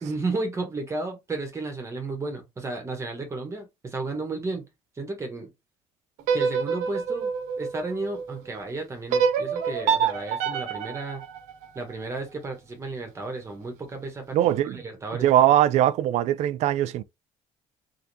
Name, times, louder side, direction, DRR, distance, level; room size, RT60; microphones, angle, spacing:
voice 1, 0.0-4.6 5.0-5.5 6.3-7.3 7.6-11.2 11.7-15.3, right 3 dB, 25° right, 1.2 m, -33 dB
sound 1, 6.2-8.4 9.1-12.2, right 6 dB, 90° right, 1.2 m, -27 dB
voice 2, 14.3-14.8 15.2-17.0, right 12 dB, 65° right, 0.4 m, -21 dB
3.9 x 3.6 x 2.7 m
cardioid pair, 120°, 12 cm